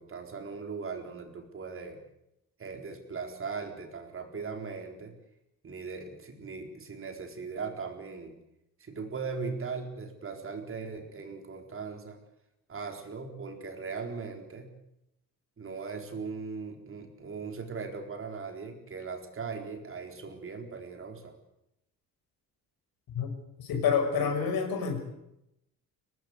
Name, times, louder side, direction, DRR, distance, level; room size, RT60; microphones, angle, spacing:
voice 1, 0.0-2.0 2.6-5.1 5.6-8.4 8.8-12.2 12.7-14.7 15.6-21.3, right 5 dB, 35° right, 4 dB, 4.4 m, -39 dB
voice 2, 23.6-25.0, left 6 dB, 75° left, 5 dB, 6.1 m, -28 dB
24.5 x 19.0 x 8.2 m, 0.82 s
cardioid pair, 135°, 36 cm